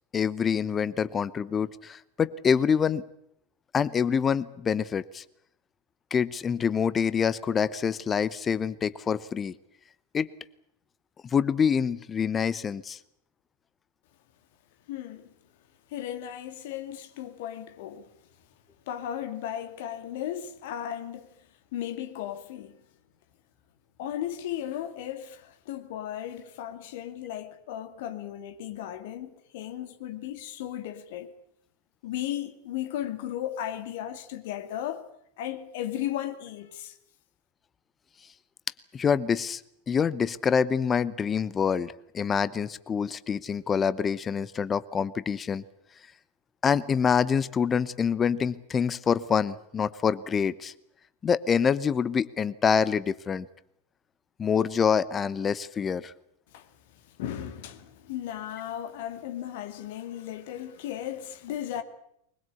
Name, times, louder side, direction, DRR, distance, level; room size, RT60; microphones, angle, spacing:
voice 1, 0.1-3.0 3.7-5.2 6.1-9.5 10.1-10.3 11.3-13.0 38.9-39.6 39.9-45.6 46.6-50.7 51.2-53.5 54.4-56.1, left 6 dB, 20° left, 0.9 m, -26 dB
voice 2, 14.9-15.3 15.9-18.1 18.9-21.3 21.7-22.8 24.0-31.3 32.0-35.0 35.4-36.9 56.5-61.8, left 11 dB, 50° left, 2.3 m, -36 dB
23.0 x 21.0 x 8.3 m
figure-of-eight pair, 90°, 0 cm